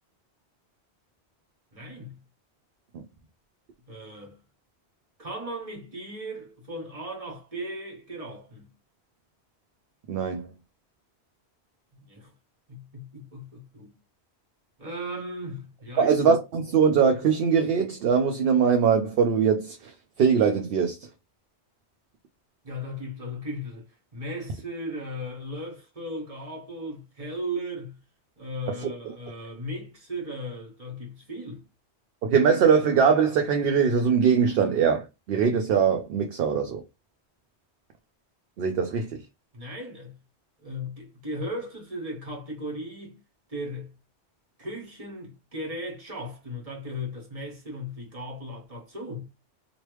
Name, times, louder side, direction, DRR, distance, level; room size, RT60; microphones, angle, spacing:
voice 1, 1.7-2.2 3.9-4.4 5.2-8.7 11.9-12.3 12.7-13.9 14.8-16.1 22.6-28.0 28.4-31.6 39.5-40.2 40.6-43.2 43.5-43.9 44.6-49.3, equal, 35° right, 1.5 m, -37 dB
voice 2, 10.1-10.5 16.0-21.1 28.7-28.9 32.2-36.8 38.6-39.2, right 6 dB, 65° right, 0.7 m, -22 dB
3.1 x 2.6 x 3.1 m
omnidirectional pair, 1.1 m